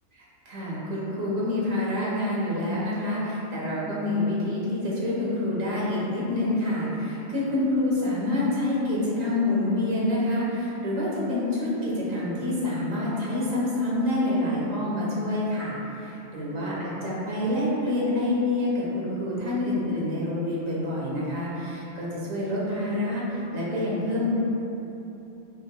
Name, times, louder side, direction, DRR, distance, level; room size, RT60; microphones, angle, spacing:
voice 1, 0.4-24.3, left 1 dB, 80° right, -7 dB, 1.5 m, -27 dB
5.6 x 3.9 x 2.2 m, 3.0 s
omnidirectional pair, 1.4 m